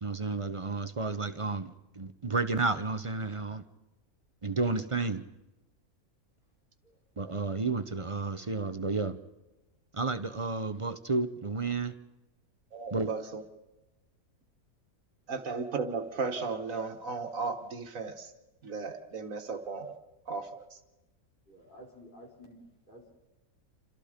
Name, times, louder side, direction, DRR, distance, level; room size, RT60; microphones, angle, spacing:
voice 1, 0.0-3.6 4.4-5.2 7.2-9.2 9.9-11.9 12.9-13.1, right 3 dB, 30° right, 11 dB, 0.7 m, -31 dB
voice 2, 12.7-13.4 15.3-18.3 18.6-19.9 20.3-20.5, right 4 dB, 60° right, 6 dB, 1.9 m, -35 dB
voice 3, 21.5-22.6 22.9-23.1, equal, 35° left, -1 dB, 5.0 m, -52 dB
28.5 x 26.5 x 5.1 m, 1.0 s
omnidirectional pair, 1.6 m